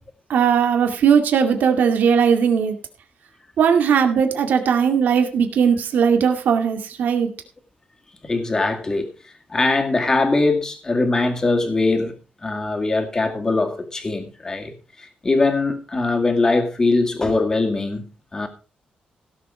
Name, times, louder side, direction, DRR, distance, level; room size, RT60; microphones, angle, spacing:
voice 1, 0.3-2.8 3.6-7.3, right 7 dB, 80° right, 2.2 m, -18 dB
voice 2, 8.2-18.5, left 3 dB, 20° left, 2.1 m, -22 dB
16.5 x 7.3 x 4.9 m
wide cardioid pair, 170°, 3 cm